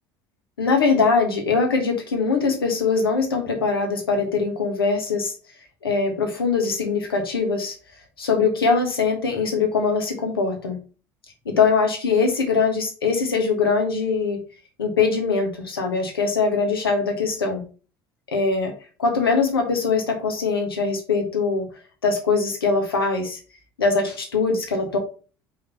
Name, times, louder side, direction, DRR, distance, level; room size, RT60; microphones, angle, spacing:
voice 1, 0.6-5.3 5.8-7.7 8.2-10.8 11.4-14.4 14.8-17.6 18.3-18.7 19.0-21.7 22.0-23.4 23.8-25.0, left 4 dB, 80° left, 4 dB, 1.3 m, -22 dB
5.1 x 3.9 x 5.4 m, 0.37 s
figure-of-eight pair, 65°, 12 cm